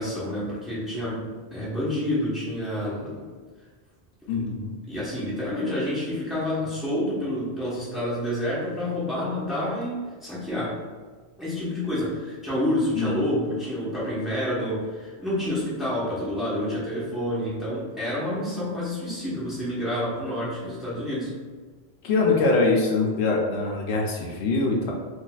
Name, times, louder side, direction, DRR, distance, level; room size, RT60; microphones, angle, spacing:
voice 1, 0.0-3.2 4.3-4.5 4.9-10.8 11.4-21.3, left 1 dB, ahead, -9 dB, 1.0 m, -28 dB
voice 2, 4.3-4.7 12.9-13.2 22.0-24.9, left 3 dB, 80° left, -1 dB, 0.8 m, -23 dB
3.9 x 2.5 x 2.3 m, 1.5 s
omnidirectional pair, 1.1 m